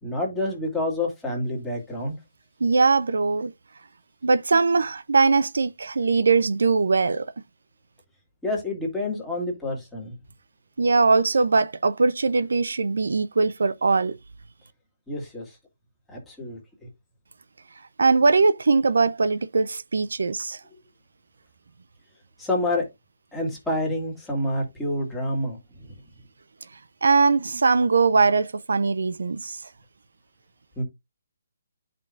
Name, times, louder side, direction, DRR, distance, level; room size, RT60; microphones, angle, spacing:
voice 1, 0.0-2.2 8.4-10.2 15.1-15.6 16.1-16.9 22.4-22.9 23.3-25.6 30.8-30.9, left 1 dB, 5° left, 2.1 m, -28 dB
voice 2, 2.6-3.5 4.2-7.3 10.8-14.2 18.0-20.6 27.0-29.6, right 4 dB, 75° right, 0.6 m, -21 dB
11.5 x 5.3 x 2.5 m
hypercardioid pair, 170°, 0 cm